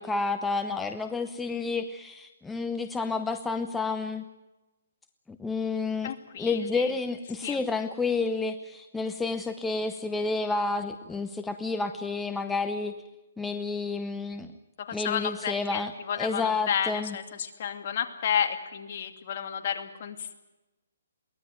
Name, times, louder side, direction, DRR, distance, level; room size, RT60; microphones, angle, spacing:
voice 1, 0.0-4.2 5.3-13.0 13.4-14.5 14.9-17.2, left 4 dB, 5° left, 7 dB, 0.8 m, -30 dB
voice 2, 6.0-6.9 7.4-7.6 14.9-20.4, left 8 dB, 45° left, 5 dB, 2.6 m, -31 dB
22.5 x 18.0 x 9.3 m, 1.0 s
hypercardioid pair, 155°, 0 cm